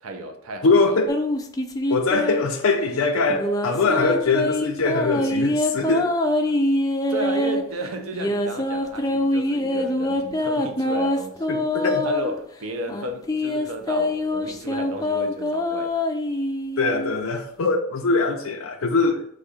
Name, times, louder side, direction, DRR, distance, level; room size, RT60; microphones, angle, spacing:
voice 1, 0.0-1.0 6.4-6.6 7.1-11.6 12.0-16.0, right 2 dB, 85° right, 0.7 m, -33 dB
voice 2, 0.6-1.2 1.9-6.1 11.5-12.1 16.8-19.3, left 3 dB, 80° left, 0.5 m, -22 dB
sound 1, 1.1-2.6 3.3-7.6 8.1-12.3 12.9-17.1, left 1 dB, 15° left, 0.4 m, -24 dB
4.1 x 2.6 x 4.9 m
head